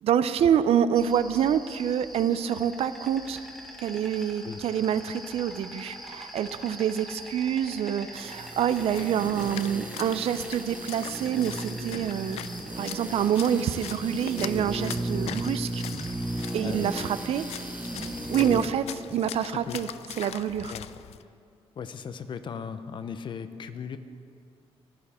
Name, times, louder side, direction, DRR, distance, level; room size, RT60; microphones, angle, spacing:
voice 1, 0.0-3.4 3.8-12.4 12.8-15.8 16.5-17.5 18.3-18.9 19.1-19.9 20.2-20.7, right 9 dB, 75° right, 13 dB, 0.5 m, -26 dB
Insect, 1.0-18.5, equal, ahead, 1.5 m, -44 dB
sound 1, 8.1-18.8 19.1-19.2, right 2 dB, 15° right, 0.6 m, -35 dB
Splash splatter, 8.5-21.2, left 11 dB, 85° left, 0.4 m, -42 dB
voice 2, 16.6-16.9 18.4-18.6 19.4-19.8 20.7-20.9 21.8-24.0, left 6 dB, 50° left, 11 dB, 0.6 m, -38 dB
15.5 x 11.0 x 4.3 m, 2.3 s
wide cardioid pair, 140°, 10 cm